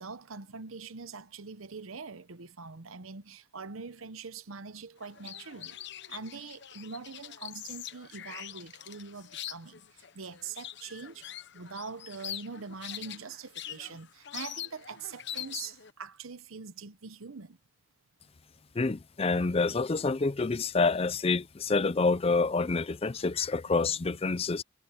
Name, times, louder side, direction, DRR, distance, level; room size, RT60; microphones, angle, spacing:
voice 1, 0.0-11.3 11.5-17.6 23.0-23.2 23.9-24.0, right 5 dB, 80° right, 0.9 m, -43 dB
sound 1, 5.0-15.9, left 11 dB, 55° left, 1.0 m, -43 dB
voice 2, 18.8-24.6, left 4 dB, 30° left, 0.5 m, -27 dB
head